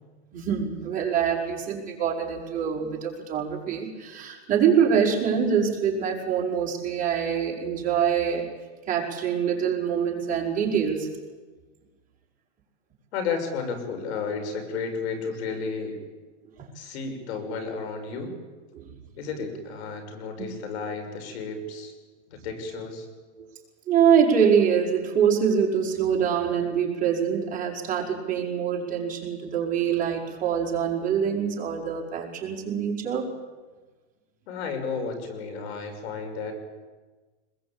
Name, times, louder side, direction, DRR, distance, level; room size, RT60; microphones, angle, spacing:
voice 1, 0.3-8.5 8.9-11.1 16.6-16.7 18.7-18.9 23.4-23.5 23.9-33.3, right 7 dB, 20° right, -3 dB, 5.2 m, -24 dB
voice 2, 13.1-16.0 16.7-18.3 19.2-21.9 22.3-23.1 34.5-36.5, left 5 dB, 65° left, 6 dB, 6.3 m, -32 dB
25.5 x 21.5 x 8.9 m, 1.3 s
supercardioid pair, 155°, 36 cm